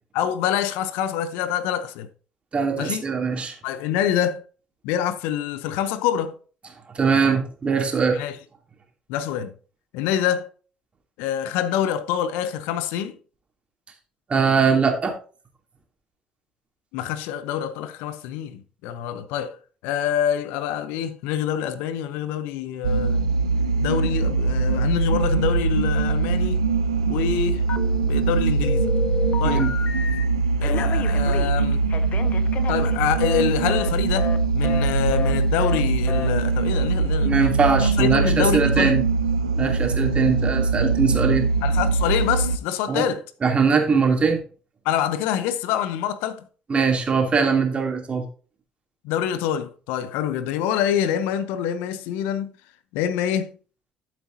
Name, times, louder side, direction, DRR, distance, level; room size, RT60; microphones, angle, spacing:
voice 1, 0.1-2.1 2.8-3.0 3.6-4.4 4.8-6.4 8.1-8.4 9.1-9.5 9.9-10.5 11.2-13.2 16.9-23.3 23.8-26.6 27.1-27.6 28.0-28.9 29.4-29.7 30.6-31.8 32.7-37.4 37.8-38.9 41.6-43.3 44.8-46.5 49.0-52.6 52.9-53.5, left 9 dB, 70° left, 0.7 m, -26 dB
voice 2, 2.5-3.5 6.9-8.2 14.3-15.1 29.4-29.7 37.2-39.0 39.6-41.4 42.9-43.1 43.4-44.4 46.7-48.2, right 5 dB, 35° right, 2.8 m, -21 dB
sound 1, 22.8-42.6, right 4 dB, 90° right, 0.4 m, -22 dB
Telephone, 27.7-28.3 28.6-30.2 30.6-33.4 33.7-33.9 34.2-34.4 34.6-34.9 35.1-35.3 35.6-35.8 36.1-36.3, left 6 dB, 50° left, 1.1 m, -31 dB
13.0 x 7.4 x 2.7 m
hypercardioid pair, 55°, 3 cm